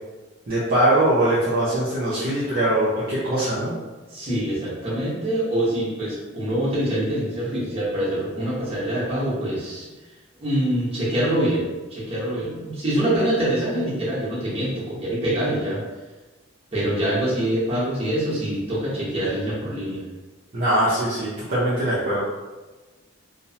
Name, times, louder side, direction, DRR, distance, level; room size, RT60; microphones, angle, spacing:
voice 1, 0.5-3.7 20.5-22.2, right 1 dB, 45° right, -10 dB, 0.6 m, -21 dB
voice 2, 4.1-9.9 10.4-15.8 16.7-20.0, right 1 dB, 30° right, -8 dB, 0.9 m, -25 dB
2.8 x 2.0 x 2.7 m, 1.2 s
head